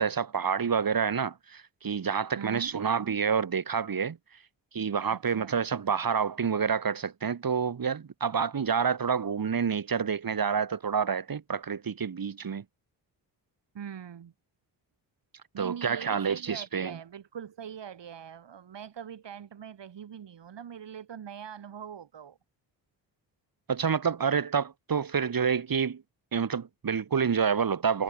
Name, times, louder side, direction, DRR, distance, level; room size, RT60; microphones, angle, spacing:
voice 1, 0.0-4.2 4.7-12.6 15.6-17.0 23.7-26.0 26.3-28.0, right 6 dB, 50° right, 2.5 m, -28 dB
voice 2, 2.4-2.7 5.1-5.6 13.7-14.3 15.5-22.4, right 8 dB, 65° right, 5.5 m, -42 dB
supercardioid pair, 55°, 45 cm